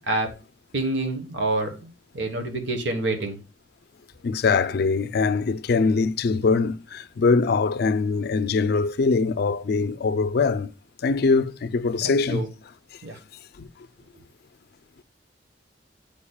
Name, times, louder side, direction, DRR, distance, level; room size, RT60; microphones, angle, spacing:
voice 1, 0.7-1.9 2.1-3.4 12.0-12.5 13.0-13.2, right 2 dB, 75° right, 1.3 m, -27 dB
voice 2, 4.2-10.7 11.0-12.4 13.6-13.7, left 4 dB, 60° left, 0.4 m, -22 dB
8.5 x 5.2 x 2.3 m
head